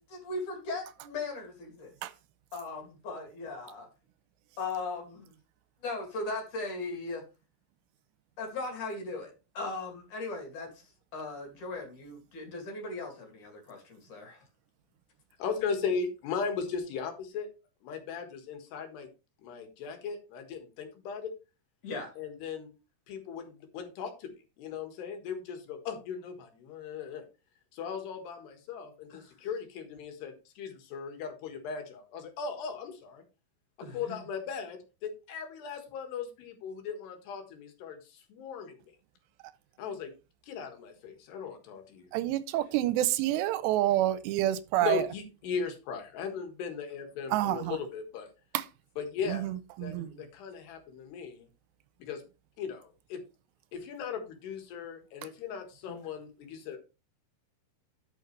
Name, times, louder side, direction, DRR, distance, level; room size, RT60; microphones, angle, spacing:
voice 1, 0.1-1.9 2.5-3.9 4.6-5.3 5.8-7.2 8.4-10.8 11.1-14.4 21.8-22.1 29.1-29.3 33.8-34.2 50.0-50.3 55.9-56.0, left 3 dB, 50° left, 3.5 m, -38 dB
voice 2, 15.4-17.5 17.8-19.1 19.4-21.3 22.2-22.7 23.1-24.3 24.6-27.2 27.7-33.2 33.9-38.8 39.8-40.1 40.5-42.1 44.8-48.3 49.0-49.5 49.8-51.5 52.0-52.2 52.6-53.2 53.7-56.8, left 6 dB, 75° left, 3.7 m, -37 dB
voice 3, 42.1-45.1 47.3-47.8 48.5-48.7 49.2-50.1, right 14 dB, 85° right, 2.8 m, -28 dB
12.5 x 6.4 x 3.2 m
omnidirectional pair, 4.9 m